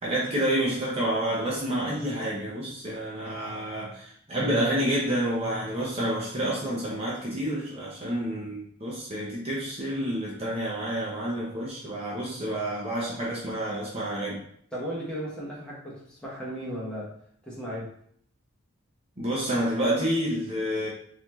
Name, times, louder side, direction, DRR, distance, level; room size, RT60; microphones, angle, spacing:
voice 1, 0.0-14.4 19.2-20.9, right 1 dB, 30° right, -6 dB, 0.8 m, -29 dB
voice 2, 14.7-17.1 17.4-17.9, equal, 5° left, -7 dB, 1.1 m, -35 dB
4.0 x 2.8 x 3.1 m, 0.63 s
head